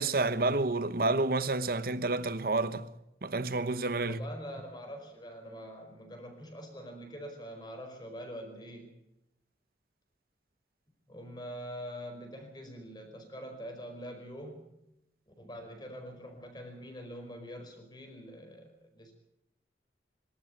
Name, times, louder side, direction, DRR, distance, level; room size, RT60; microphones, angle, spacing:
voice 1, 0.0-2.9 3.2-4.2, right 3 dB, 55° right, 1.1 m, -29 dB
voice 2, 4.0-8.9 11.1-14.7 15.4-19.1, equal, 25° left, 5.0 m, -44 dB
24.0 x 13.0 x 9.5 m
head